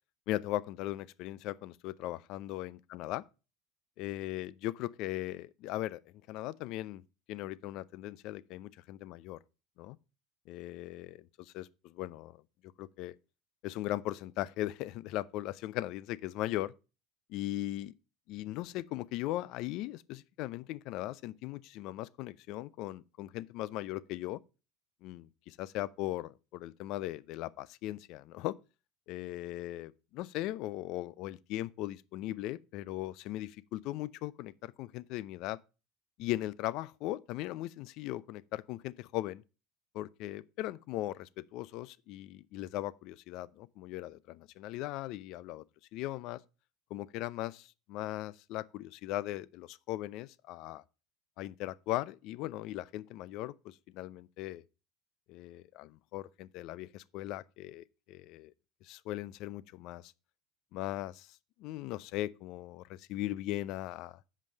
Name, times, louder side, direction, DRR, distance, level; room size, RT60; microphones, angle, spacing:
voice 1, 0.3-3.2 4.0-6.0 6.3-7.0 7.3-9.4 9.8-10.0 10.5-12.4 12.8-13.1 13.6-16.7 17.3-17.9 18.3-24.4 25.0-28.5 29.1-35.6 36.2-39.4 39.9-45.6 45.9-46.4 46.9-50.8 51.4-54.6 55.3-58.5 58.8-60.1 60.7-61.3 61.6-64.2, left 15 dB, 60° left, 0.5 m, -38 dB
7.5 x 5.4 x 6.3 m
supercardioid pair, 100°, 0 cm